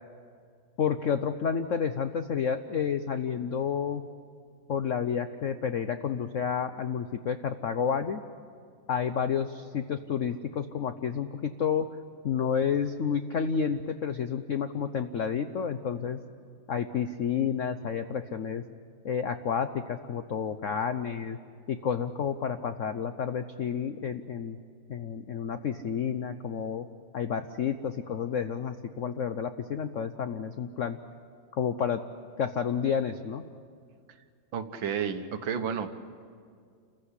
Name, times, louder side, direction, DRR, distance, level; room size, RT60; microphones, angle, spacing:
voice 1, 0.8-4.0 4.7-8.2 8.9-11.9 12.2-16.2 16.7-18.6 19.0-21.4 21.7-24.6 24.9-26.9 27.1-31.0 31.5-32.0 32.4-33.4, left 7 dB, 80° left, 9 dB, 0.6 m, -30 dB
voice 2, 34.5-35.9, right 7 dB, 65° right, 8 dB, 1.8 m, -31 dB
28.5 x 15.5 x 9.9 m, 2.1 s
omnidirectional pair, 2.3 m